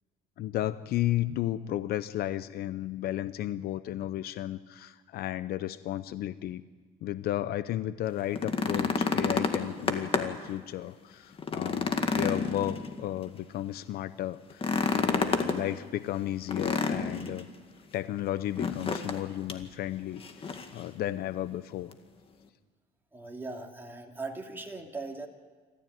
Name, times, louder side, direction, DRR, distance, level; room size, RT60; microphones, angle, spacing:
voice 1, 0.4-6.6 7.0-14.7 15.0-17.5 17.9-21.9, left 13 dB, 60° left, 14 dB, 0.7 m, -33 dB
sound 1, 8.2-10.5 10.9-11.0 11.4-13.3 14.5-15.6 16.5-17.4 18.6-19.2 19.5-19.6 20.2-20.8 21.9-22.0, left 4 dB, 30° left, 2.1 m, -29 dB
voice 2, 23.1-25.3, right 3 dB, 10° right, 1 dB, 2.8 m, -39 dB
26.5 x 14.0 x 9.4 m, 1.5 s
cardioid pair, 105°, 18 cm